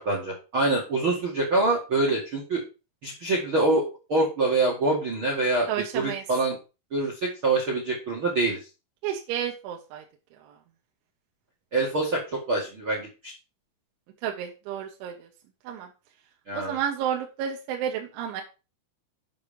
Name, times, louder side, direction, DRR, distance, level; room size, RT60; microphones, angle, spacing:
voice 1, 0.0-2.6 3.0-5.7 5.9-6.6 6.9-8.6 11.7-13.1 16.5-16.8, right 2 dB, 50° right, 1 dB, 1.5 m, -25 dB
voice 2, 5.7-6.2 9.0-10.0 10.5-10.6 14.2-15.3 15.7-15.9 16.5-18.4, right 9 dB, 75° right, 2 dB, 3.4 m, -31 dB
9.6 x 5.8 x 5.2 m, 0.30 s
omnidirectional pair, 5.8 m